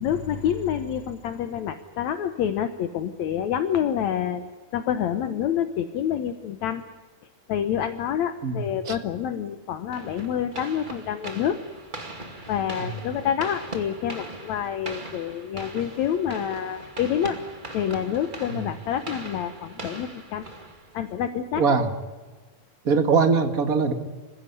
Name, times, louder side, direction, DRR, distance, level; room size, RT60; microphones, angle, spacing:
voice 1, 0.0-4.4 4.7-6.8 7.5-11.6 12.5-17.4 17.7-20.5 20.9-21.6, left 9 dB, 70° left, 9 dB, 2.2 m, -27 dB
voice 2, 8.4-9.0 12.8-13.0 18.5-18.6 21.6-21.9 22.8-23.9, right 5 dB, 35° right, 7 dB, 1.8 m, -22 dB
sound 1, 9.9-21.2, right 2 dB, 15° right, 2.1 m, -40 dB
26.0 x 16.0 x 9.8 m, 1.3 s
omnidirectional pair, 3.6 m